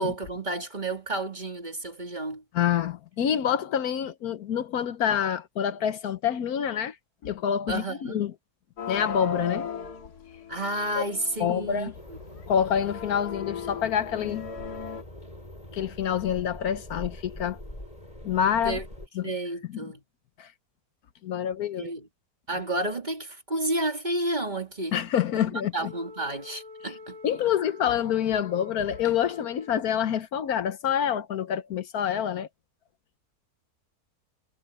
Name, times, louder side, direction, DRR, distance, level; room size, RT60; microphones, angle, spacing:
voice 1, 0.0-2.4 7.7-8.2 10.5-12.2 18.6-18.8 19.2-20.0 21.8-22.0 22.5-25.0 25.5-27.2, right 1 dB, 30° right, 2.8 m, -31 dB
voice 2, 2.5-7.0 7.2-8.3 8.9-9.7 10.9-11.0 11.4-11.9 12.5-14.5 15.7-17.6 18.2-18.8 19.1-19.2 19.7-19.8 20.4-20.5 21.2-21.9 24.9-25.9 27.2-32.5, left 9 dB, 70° left, 1.3 m, -27 dB
sound 1, 8.8-11.7 12.2-12.3 12.8-15.0, left 5 dB, 90° left, 2.6 m, -37 dB
sound 2, 11.9-19.1, left 1 dB, 25° left, 8.0 m, -43 dB
Wind instrument woodwind instrument, 25.8-30.1, left 3 dB, 65° right, 2.9 m, -46 dB
omnidirectional pair, 1.6 m